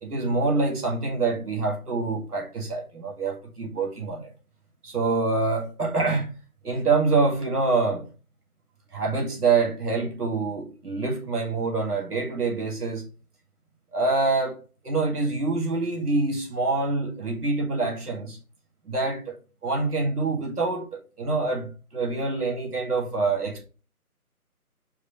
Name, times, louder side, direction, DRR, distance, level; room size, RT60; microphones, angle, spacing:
voice 1, 0.0-4.3 4.8-6.3 6.6-8.1 8.9-13.0 13.9-14.6 14.8-18.4 18.9-19.3 19.6-23.6, right 3 dB, 85° right, 1.9 m, -26 dB
4.7 x 2.9 x 3.4 m
figure-of-eight pair, 155°, 45 cm